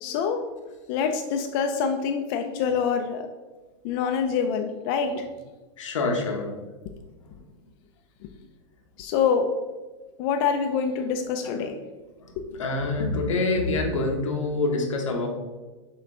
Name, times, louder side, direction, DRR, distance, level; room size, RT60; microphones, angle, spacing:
voice 1, 0.0-0.4 0.9-3.3 3.8-5.3 9.0-9.5 10.2-11.8, left 6 dB, 50° left, 4 dB, 0.4 m, -25 dB
voice 2, 5.8-6.5 7.2-7.3 11.4-11.7 12.2-15.3, left 3 dB, 85° left, 2 dB, 0.9 m, -26 dB
5.9 x 2.2 x 3.6 m, 1.3 s
hypercardioid pair, 125°, 16 cm